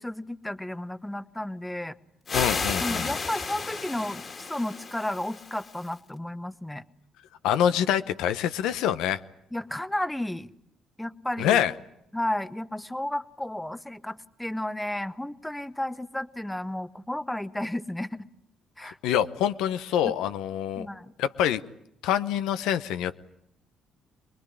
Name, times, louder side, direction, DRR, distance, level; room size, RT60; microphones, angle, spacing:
voice 1, 0.0-2.0 2.8-6.8 9.5-10.5 11.0-11.6 12.1-18.3 18.8-19.0 20.0-20.1 20.8-21.1, left 1 dB, 10° left, 14 dB, 1.0 m, -33 dB
voice 2, 2.3-3.1 7.4-9.2 11.4-11.7 18.8-20.9 21.2-21.6 22.0-23.2, left 10 dB, 85° left, 11 dB, 0.9 m, -25 dB
sound 1, 2.3-5.9, left 4 dB, 40° left, 2.4 m, -33 dB
24.5 x 20.5 x 10.0 m, 0.78 s
cardioid pair, 80°, 0 cm